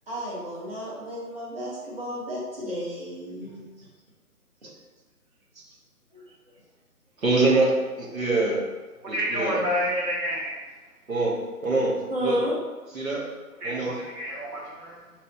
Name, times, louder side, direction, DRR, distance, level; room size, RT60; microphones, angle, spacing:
voice 1, 0.1-3.7 6.1-6.2 12.1-12.5, equal, 35° right, -5 dB, 1.1 m, -32 dB
voice 2, 7.2-8.6 9.1-9.6 11.1-11.3 11.6-12.4 12.9-13.3 13.6-14.0, right 2 dB, 60° right, -3 dB, 1.2 m, -24 dB
voice 3, 9.0-10.6 13.6-14.9, equal, 75° right, -4 dB, 1.4 m, -29 dB
3.3 x 2.6 x 4.2 m, 1.2 s
figure-of-eight pair, 150°, 47 cm